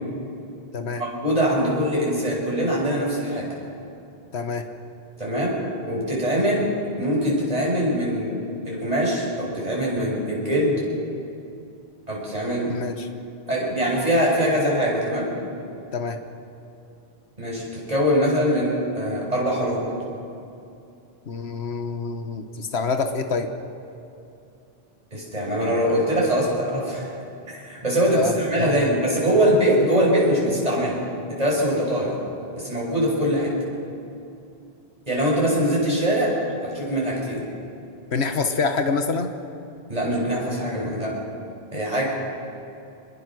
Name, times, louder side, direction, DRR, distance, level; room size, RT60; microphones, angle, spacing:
voice 1, 1.0-3.5 5.2-5.6 5.9-6.7 7.0-8.4 8.6-10.8 12.1-12.8 13.5-15.3 17.4-19.9 25.1-27.1 27.5-31.0 31.3-32.2 32.5-33.6 35.1-36.4 36.6-37.4 39.9-41.1 41.7-42.1, equal, 35° right, -4 dB, 6.5 m, -22 dB
voice 2, 4.3-4.6 12.7-13.1 15.9-16.2 21.3-23.5 28.1-28.9 38.1-39.3 40.8-40.9, left 4 dB, 85° left, 7 dB, 1.5 m, -26 dB
25.0 x 21.5 x 6.2 m, 2.6 s
omnidirectional pair, 1.1 m